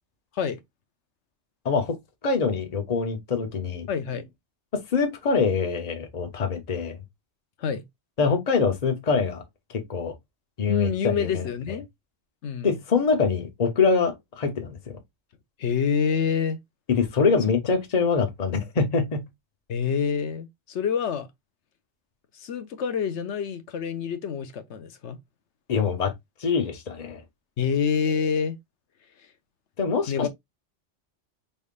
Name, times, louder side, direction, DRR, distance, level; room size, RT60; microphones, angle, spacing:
voice 1, 1.6-2.0 2.2-3.9 4.7-7.0 8.2-9.4 9.7-10.1 10.6-11.5 12.6-15.0 16.9-19.3 25.7-26.1 26.4-27.2 29.8-30.3, left 5 dB, 35° left, 0.9 m, -24 dB
voice 2, 3.9-4.3 7.6-7.8 10.7-11.9 12.4-12.7 15.6-16.6 19.7-21.3 22.3-25.2 27.6-28.6 30.1-30.3, left 6 dB, 75° left, 1.0 m, -27 dB
5.3 x 3.5 x 2.4 m
omnidirectional pair, 1.2 m